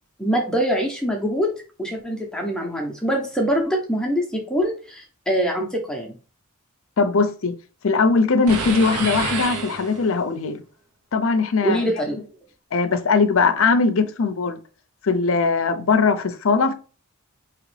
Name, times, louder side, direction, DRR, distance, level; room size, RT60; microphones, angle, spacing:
voice 1, 0.2-1.5 1.8-6.2 11.6-12.3, equal, 5° left, 0.7 m, -24 dB
voice 2, 7.0-7.5 7.8-10.6 11.1-11.8 12.7-14.6 15.0-16.7, left 4 dB, 65° left, 0.5 m, -20 dB
sound 1, 8.5-10.3, right 4 dB, 85° right, 0.9 m, -28 dB
4.9 x 3.0 x 3.2 m
head